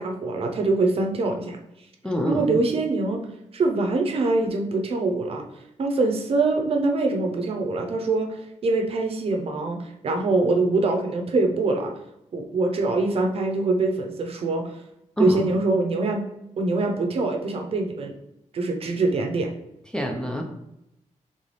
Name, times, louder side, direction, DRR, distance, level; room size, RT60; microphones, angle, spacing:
voice 1, 0.0-1.6 2.3-3.3 3.5-5.4 5.8-8.3 8.6-9.8 10.0-11.9 12.3-14.6 15.2-16.3 16.6-18.1 18.5-19.5, right 3 dB, 50° right, 3 dB, 0.6 m, -24 dB
voice 2, 2.0-2.6 15.2-15.5 19.9-20.4, equal, 5° left, 2 dB, 0.4 m, -26 dB
3.7 x 3.2 x 4.0 m, 0.85 s
wide cardioid pair, 175°, 13 cm